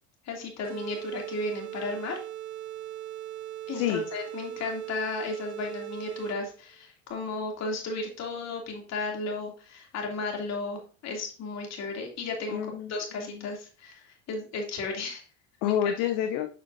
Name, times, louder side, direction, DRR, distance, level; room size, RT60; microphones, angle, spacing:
voice 1, 0.2-2.2 3.7-12.6 12.9-15.2 15.6-15.8, left 3 dB, 50° left, 1 dB, 2.9 m, -34 dB
sound 1, 0.6-6.6, right 13 dB, 55° right, 1.4 m, -39 dB
voice 2, 3.7-4.0 12.5-13.5 15.6-16.5, left 10 dB, 65° left, 7 dB, 0.8 m, -29 dB
7.6 x 6.2 x 2.7 m, 0.37 s
hypercardioid pair, 80°, 34 cm